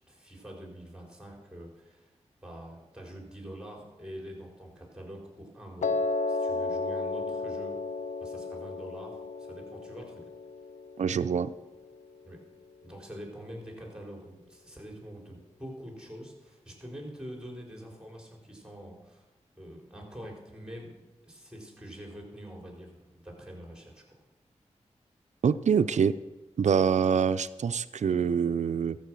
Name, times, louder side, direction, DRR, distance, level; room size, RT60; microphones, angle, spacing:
voice 1, 0.1-2.1 2.4-6.0 6.3-7.7 8.2-10.3 12.3-12.4 12.8-19.3 19.6-24.0, equal, 5° right, 0 dB, 4.7 m, -45 dB
Piano, 5.8-12.0, left 3 dB, 80° left, 0.6 m, -33 dB
voice 2, 11.0-11.5 25.4-26.2 26.6-29.0, right 7 dB, 70° right, 13 dB, 0.5 m, -25 dB
13.5 x 8.1 x 6.3 m, 1.1 s
cardioid pair, 45°, 12 cm